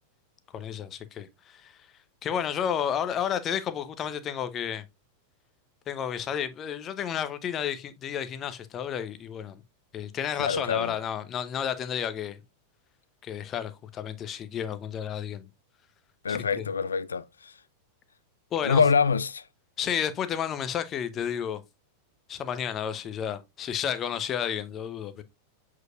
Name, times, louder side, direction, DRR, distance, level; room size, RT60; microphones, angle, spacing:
voice 1, 0.5-1.8 2.2-4.8 5.9-9.6 9.9-12.4 13.2-15.5 16.3-16.7 18.5-18.8 19.8-21.6 22.3-25.2, left 8 dB, 30° left, 0.8 m, -31 dB
voice 2, 10.4-10.9 16.2-17.5 18.6-19.4, left 5 dB, 70° left, 0.4 m, -25 dB
7.8 x 4.7 x 2.5 m
figure-of-eight pair, 90°, 0 cm